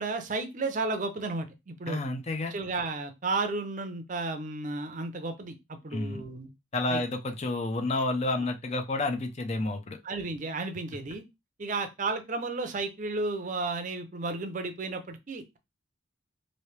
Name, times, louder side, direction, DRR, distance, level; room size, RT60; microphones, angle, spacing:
voice 1, 0.0-2.0 2.5-6.5 6.9-7.0 10.0-11.2 11.6-15.6, right 3 dB, 40° right, 7 dB, 0.5 m, -33 dB
voice 2, 1.9-2.5 5.9-6.2 6.7-10.0, left 2 dB, 30° left, 5 dB, 0.5 m, -30 dB
3.1 x 2.7 x 3.2 m, 0.23 s
head